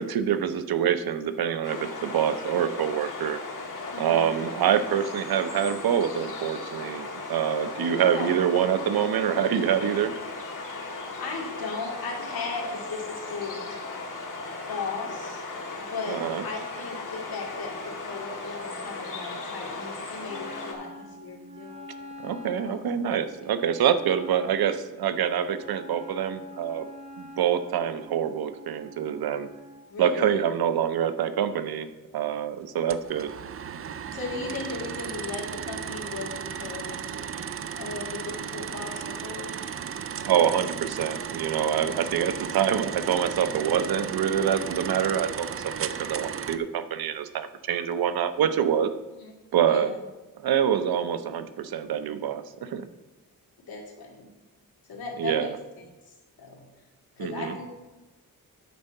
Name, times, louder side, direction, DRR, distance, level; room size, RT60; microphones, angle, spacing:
voice 1, 0.0-3.4 4.0-10.1 16.1-16.4 22.2-26.9 27.2-29.5 30.0-31.9 32.1-33.3 40.2-48.9 49.5-49.9 50.4-52.9 55.2-55.6 57.2-57.5, right 9 dB, 85° right, 10 dB, 0.7 m, -26 dB
sound 1, 1.6-20.7, left 3 dB, 60° left, 2.0 m, -37 dB
voice 2, 3.9-4.3 7.7-8.4 11.2-13.6 14.7-15.4 15.8-22.1 22.6-22.8 29.9-30.4 34.1-37.1 37.7-39.7 49.2-49.3 49.6-50.0 53.7-54.3 54.9-55.5 55.8-56.6 57.2-57.7, left 4 dB, 85° left, -1 dB, 2.3 m, -37 dB
Wind instrument woodwind instrument, 20.3-29.9, left 1 dB, 20° right, 0.8 m, -45 dB
sound 2, 32.9-46.6, right 7 dB, 40° right, 0.4 m, -35 dB
9.4 x 4.5 x 6.5 m, 1.1 s
wide cardioid pair, 125°, 36 cm